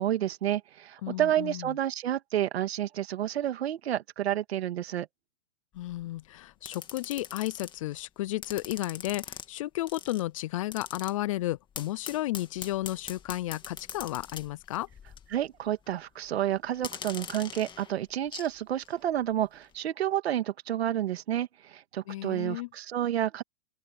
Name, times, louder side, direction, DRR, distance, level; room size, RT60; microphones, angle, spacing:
voice 1, 0.0-5.1 15.3-23.4, right 11 dB, 75° right, 2.0 m, -30 dB
voice 2, 1.0-1.7 5.7-14.9 22.1-22.7, left 16 dB, 35° left, 0.4 m, -33 dB
sound 1, 5.8-6.0 6.6-8.0 8.4-9.5 9.9-10.2 10.7-11.1 11.7-15.4 15.7-15.9 16.7-18.5 18.8-18.9, left 8 dB, 15° left, 1.8 m, -43 dB
open air
hypercardioid pair, 150°, 32 cm